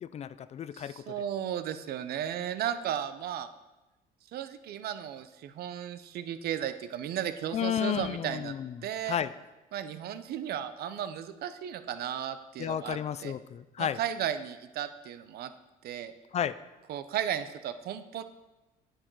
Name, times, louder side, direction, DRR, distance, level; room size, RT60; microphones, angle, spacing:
voice 1, 0.0-0.9 7.5-8.7 9.1-9.3 12.6-14.0 16.3-16.5, left 9 dB, 40° left, 15 dB, 0.4 m, -32 dB
voice 2, 0.7-3.5 4.3-8.5 8.8-9.2 9.7-13.4 13.8-15.5 15.8-16.1 16.9-18.2, right 10 dB, 65° right, 11 dB, 0.7 m, -35 dB
10.0 x 7.9 x 4.7 m, 1.1 s
cardioid pair, 110°, 17 cm